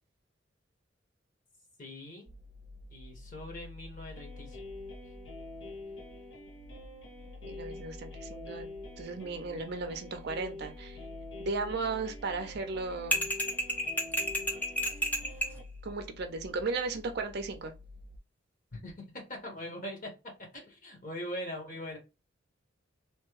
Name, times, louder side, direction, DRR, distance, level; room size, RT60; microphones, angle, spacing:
voice 1, 1.8-2.3 2.9-4.7 18.7-22.0, equal, 45° left, 1.3 m, -42 dB
sound 1, 2.3-18.2, left 2 dB, 40° right, 0.9 m, -50 dB
sound 2, 4.1-15.6, left 2 dB, 70° left, 0.8 m, -47 dB
voice 2, 7.4-8.7 9.0-11.0 11.4-13.3 15.8-17.7, right 3 dB, 55° right, 0.5 m, -35 dB
sound 3, 13.1-15.6, equal, 10° left, 0.5 m, -31 dB
3.2 x 2.2 x 3.1 m
head